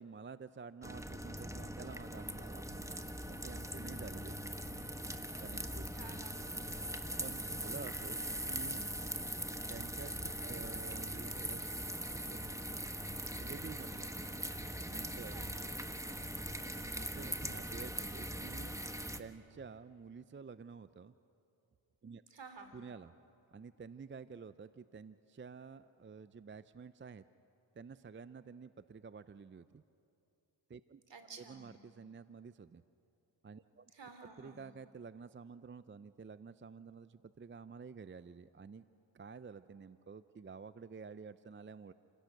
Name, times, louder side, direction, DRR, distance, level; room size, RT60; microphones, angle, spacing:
voice 1, 0.0-4.4 5.4-5.8 7.2-8.9 9.7-12.4 12.9-13.0 13.3-14.1 14.9-15.3 17.0-18.8 19.2-21.1 22.0-22.2 22.7-23.1 23.5-27.2 27.8-29.8 30.7-31.0 31.4-32.8 33.4-33.9 34.4-38.8 39.1-41.9, right 5 dB, 25° right, 14 dB, 0.6 m, -50 dB
sound 1, 0.8-19.2, right 1 dB, 5° right, 1.3 m, -41 dB
voice 2, 5.9-6.6 15.3-15.7 22.3-22.8 31.1-31.7 33.9-34.6, right 4 dB, 60° right, 6 dB, 3.2 m, -53 dB
29.0 x 16.5 x 6.6 m, 2.7 s
cardioid pair, 45°, 48 cm